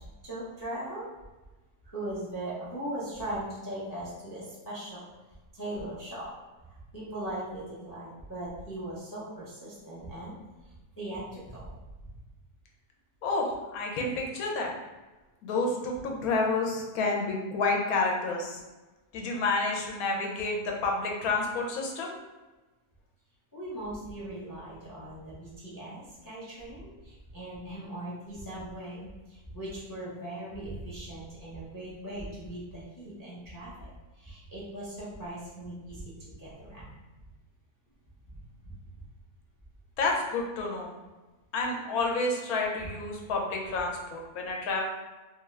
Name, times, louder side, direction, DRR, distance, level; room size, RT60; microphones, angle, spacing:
voice 1, 0.2-1.1 1.9-5.0 5.5-6.3 6.7-10.4 11.0-11.7 23.5-33.9 34.2-37.0 38.3-38.4 38.6-38.7, right 1 dB, 30° left, -8 dB, 0.3 m, -39 dB
voice 2, 13.2-14.7 15.4-18.6 19.1-22.1 40.0-40.9 41.5-44.8, left 3 dB, 85° left, 0 dB, 1.1 m, -29 dB
2.7 x 2.4 x 3.2 m, 1.2 s
omnidirectional pair, 1.5 m